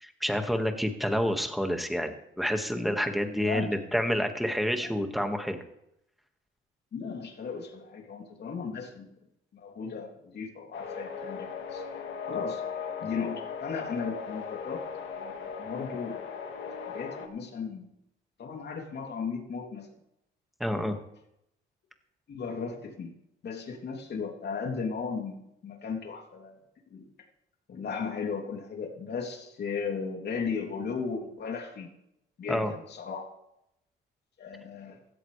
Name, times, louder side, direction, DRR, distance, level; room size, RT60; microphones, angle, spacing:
voice 1, 0.0-5.6 20.6-21.0 32.5-32.7, equal, ahead, 5 dB, 1.9 m, -29 dB
voice 2, 3.4-3.7 4.8-4.9 6.9-9.1 9.5-11.8 12.2-12.6 13.0-14.9 15.2-16.2 16.7-17.9 18.4-19.9 20.7-21.0 22.3-23.1 23.4-26.6 26.9-27.0 27.7-31.9 32.4-33.3 34.4-35.0, left 5 dB, 55° left, 2 dB, 3.1 m, -36 dB
sound 1, 10.7-17.3, left 6 dB, 75° left, 2.1 m, -38 dB
16.5 x 13.5 x 3.4 m, 0.81 s
cardioid pair, 90°, 20 cm